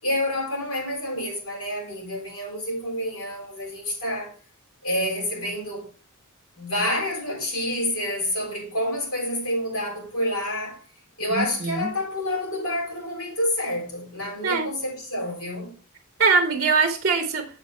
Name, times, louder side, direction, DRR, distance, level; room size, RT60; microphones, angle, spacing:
voice 1, 0.0-4.3 4.8-5.8 6.6-10.8 11.2-15.8, left 1 dB, 85° left, 4.0 m, -28 dB
voice 2, 11.4-11.9 14.4-14.7 16.2-17.5, right 4 dB, 45° right, 0.8 m, -22 dB
8.1 x 7.1 x 3.2 m
head